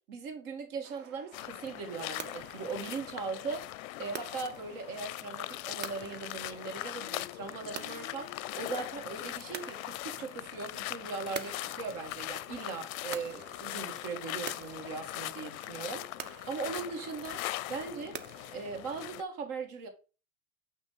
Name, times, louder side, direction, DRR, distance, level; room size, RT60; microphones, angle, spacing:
voice 1, 0.0-3.6 4.0-16.1 16.5-17.4 17.7-18.2 18.5-19.9, right 5 dB, 50° right, 2.2 m, -39 dB
sound 1, 0.8-18.8, right 6 dB, 25° right, 0.8 m, -49 dB
sound 2, 1.3-19.2, left 17 dB, 70° left, 0.5 m, -41 dB
8.2 x 3.4 x 5.5 m
hypercardioid pair, 110°, 43 cm